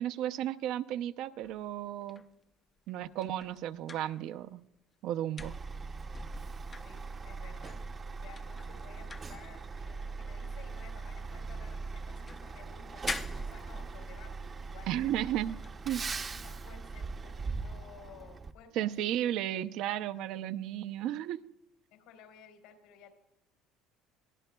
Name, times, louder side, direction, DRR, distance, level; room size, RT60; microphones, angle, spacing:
voice 1, 0.0-2.2 2.9-4.6 5.0-5.5 14.9-15.6 15.9-16.0 18.7-21.4, right 12 dB, 65° right, 12 dB, 0.6 m, -34 dB
sound 1, 1.4-4.8 5.0-7.5 8.0-8.1 8.3-11.6 11.9-14.2 14.9-15.3 15.6-15.8 18.9-19.1, left 4 dB, 20° left, 0.5 m, -46 dB
Truck, 5.4-18.5, right 4 dB, 25° right, 0.7 m, -40 dB
voice 2, 6.7-7.8 8.1-15.0 15.9-18.9 19.2-19.3 21.9-23.2, left 7 dB, 85° left, 5 dB, 4.0 m, -55 dB
22.5 x 15.0 x 2.3 m, 0.84 s
cardioid pair, 145°, 0 cm